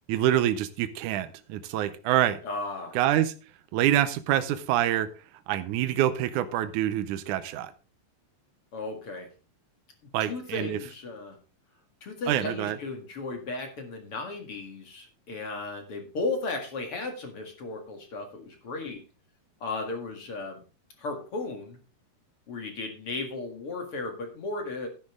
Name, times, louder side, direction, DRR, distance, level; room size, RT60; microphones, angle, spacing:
voice 1, 0.1-2.4 3.0-3.3 3.7-5.1 5.5-7.7 10.1-10.8 12.3-12.8, right 12 dB, 75° right, 10 dB, 2.0 m, -26 dB
voice 2, 2.4-3.0 8.7-9.3 10.2-11.4 12.0-19.0 19.6-20.6 21.0-21.8 22.5-24.9, left 3 dB, 45° left, 4 dB, 2.4 m, -35 dB
12.0 x 10.5 x 3.6 m, 0.34 s
omnidirectional pair, 4.0 m